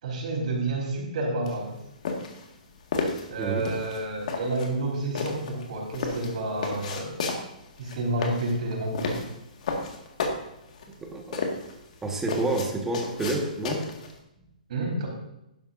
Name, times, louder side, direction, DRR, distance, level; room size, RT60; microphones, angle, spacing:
voice 1, 0.0-1.8 3.3-7.2 7.8-9.3 14.7-15.1, right 2 dB, 60° right, -1 dB, 4.5 m, -30 dB
sound 1, 1.5-14.2, left 4 dB, 60° left, 2.0 m, -33 dB
voice 2, 3.4-3.7 11.0-11.5 12.0-13.9, right 2 dB, 10° right, 1 dB, 1.6 m, -29 dB
11.5 x 11.5 x 2.7 m, 0.86 s
hypercardioid pair, 145°, 4 cm